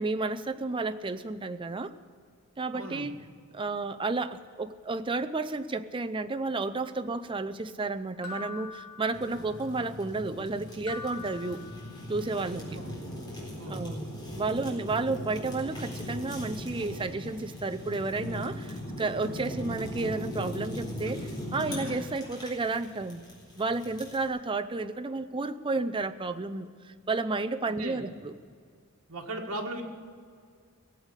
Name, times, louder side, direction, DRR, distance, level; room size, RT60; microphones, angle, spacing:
voice 1, 0.0-1.9 2.6-3.2 3.5-11.6 12.1-12.7 13.7-14.1 14.3-23.2 23.6-28.3, right 3 dB, 25° right, 9 dB, 0.5 m, -32 dB
voice 2, 2.7-3.1 12.7-12.9 13.6-14.0 19.3-19.5 27.7-28.1 29.1-29.8, right 2 dB, 65° right, 1 dB, 1.7 m, -38 dB
sound 1, 8.2-9.7 10.9-12.3, left 4 dB, 85° left, 2.1 m, -44 dB
Fire, 9.1-24.3, equal, 20° left, 4.1 m, -39 dB
18.5 x 8.1 x 8.3 m, 2.1 s
head